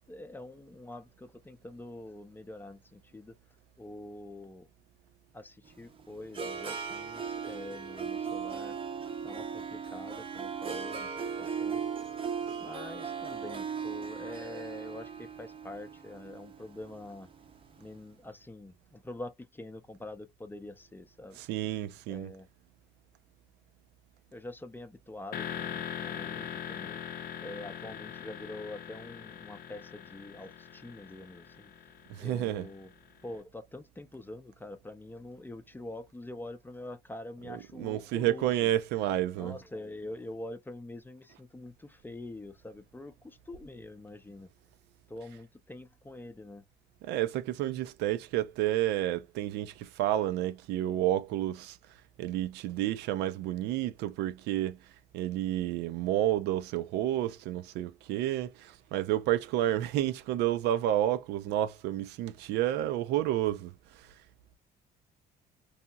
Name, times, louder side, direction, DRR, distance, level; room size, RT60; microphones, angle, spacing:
voice 1, 0.1-3.4 3.8-4.7 5.3-8.8 9.2-12.1 12.6-17.3 17.8-21.4 22.1-22.5 24.3-27.0 27.4-31.7 32.2-32.9 33.2-38.7 39.4-44.5 45.1-46.6, left 2 dB, 10° left, 0.4 m, -45 dB
Harp, 5.7-17.8, right 6 dB, 30° right, 0.6 m, -38 dB
voice 2, 21.4-22.3 32.1-32.7 37.5-39.6 47.0-51.8 52.2-54.8 55.1-63.7 64.0-64.1, right 13 dB, 85° right, 0.4 m, -30 dB
sound 1, 25.3-33.1, left 8 dB, 60° left, 0.6 m, -41 dB
2.8 x 2.7 x 2.2 m
cardioid pair, 110°, 17 cm